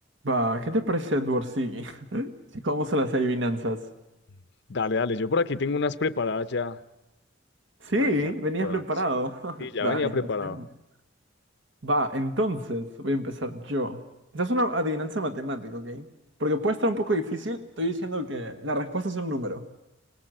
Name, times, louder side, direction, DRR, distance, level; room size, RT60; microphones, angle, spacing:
voice 1, 0.2-3.8 7.8-10.6 11.8-14.0 14.3-16.1 16.4-19.6, equal, 80° right, 8 dB, 1.6 m, -28 dB
voice 2, 4.7-6.8 8.0-8.3 8.6-8.8 9.6-10.6, left 4 dB, 65° left, 13 dB, 0.8 m, -27 dB
25.5 x 19.0 x 7.8 m, 0.96 s
head